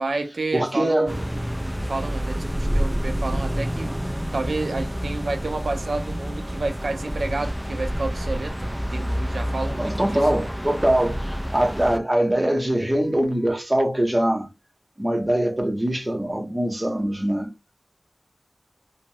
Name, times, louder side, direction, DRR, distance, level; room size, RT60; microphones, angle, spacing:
voice 1, 0.0-10.5, right 3 dB, 90° right, 0.5 m, -30 dB
voice 2, 0.5-1.2 9.8-14.5 15.0-17.5, right 1 dB, 20° right, 0.8 m, -23 dB
sound 1, 1.1-12.0, equal, ahead, 0.4 m, -28 dB
2.9 x 2.1 x 2.6 m
wide cardioid pair, 75°, 0 cm